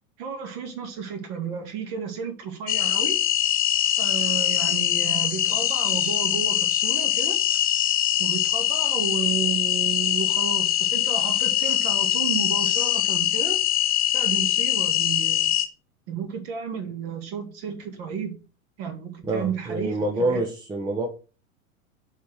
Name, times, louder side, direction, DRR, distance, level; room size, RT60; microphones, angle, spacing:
voice 1, 0.2-3.2 4.0-7.4 8.2-13.6 14.1-15.5 16.1-18.3 18.8-20.4, right 6 dB, 45° right, 2.5 m, -32 dB
sound 1, 2.7-15.6, left 12 dB, 20° left, 0.9 m, -23 dB
voice 2, 19.2-21.1, right 2 dB, 10° right, 1.0 m, -26 dB
7.0 x 4.2 x 6.3 m
figure-of-eight pair, 95°, 44 cm